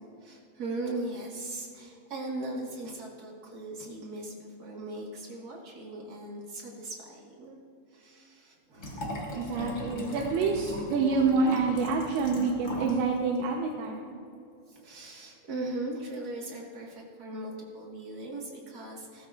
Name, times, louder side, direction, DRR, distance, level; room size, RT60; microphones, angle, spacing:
voice 1, 0.2-7.6 7.9-9.4 14.7-19.3, right 2 dB, 60° right, -3 dB, 1.0 m, -39 dB
Liquid, 8.8-13.0 13.3-13.4, left 1 dB, 65° left, 0.7 m, -39 dB
voice 2, 9.3-14.0, right 4 dB, 85° right, -1 dB, 2.9 m, -27 dB
17.0 x 14.0 x 2.5 m, 2.5 s
omnidirectional pair, 4.4 m